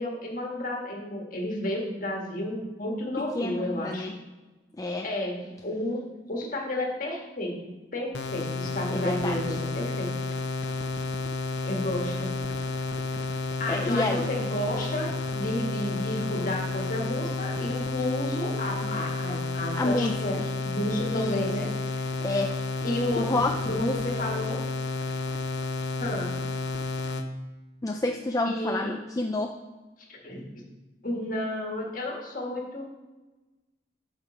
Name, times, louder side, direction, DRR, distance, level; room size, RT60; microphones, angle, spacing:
voice 1, 0.0-4.1 5.0-6.0 6.3-10.1 11.6-12.3 13.6-21.7 21.9-22.1 22.8-23.4 23.7-24.6 26.0-26.3 28.4-29.0 30.1-30.6 31.0-32.8, left 1 dB, 45° left, 0 dB, 1.8 m, -32 dB
voice 2, 3.2-4.1 4.8-5.1 8.9-9.4 13.7-14.3 19.7-20.2 21.1-21.4 22.2-22.5 23.2-24.0 27.8-29.6, left 2 dB, 20° left, 2 dB, 0.4 m, -29 dB
sound 1, 8.1-27.3, left 3 dB, 65° left, 0.7 m, -31 dB
7.6 x 5.8 x 5.1 m, 1.2 s
head